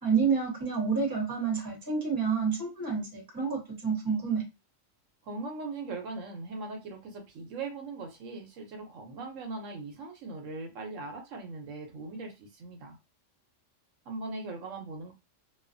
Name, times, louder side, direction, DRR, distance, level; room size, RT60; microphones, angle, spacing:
voice 1, 0.0-4.4, right 5 dB, 15° right, -2 dB, 1.0 m, -29 dB
voice 2, 5.2-13.0 14.1-15.1, right 3 dB, 75° right, 3 dB, 1.0 m, -40 dB
2.5 x 2.4 x 2.5 m, 0.26 s
omnidirectional pair, 1.3 m